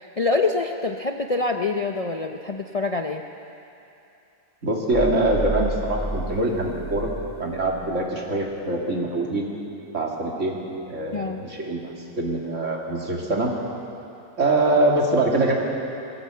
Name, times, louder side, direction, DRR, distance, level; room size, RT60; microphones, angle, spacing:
voice 1, 0.2-3.2 11.1-11.4, left 3 dB, 40° left, 3 dB, 0.6 m, -25 dB
voice 2, 4.6-7.1 7.4-9.6 9.9-10.6 10.9-13.5 14.4-15.6, right 2 dB, 65° right, -1 dB, 2.8 m, -24 dB
sound 1, 4.9-7.5 7.8-7.9, right 2 dB, 10° left, 2.0 m, -31 dB
20.5 x 16.5 x 7.6 m, 2.8 s
omnidirectional pair, 1.4 m